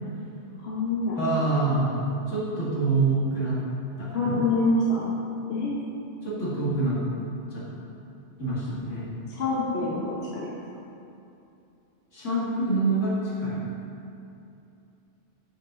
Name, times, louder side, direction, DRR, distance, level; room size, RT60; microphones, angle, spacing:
voice 1, 0.6-1.2 4.1-5.1 5.5-5.7 9.3-10.5, left 2 dB, 60° left, -6 dB, 1.2 m, -26 dB
voice 2, 1.2-3.6 4.0-4.4 6.2-7.0 7.5-7.6 8.4-9.1 12.1-13.1 13.4-13.7, right 2 dB, 80° left, -8 dB, 2.3 m, -26 dB
8.9 x 5.3 x 3.8 m, 2.7 s
omnidirectional pair, 1.2 m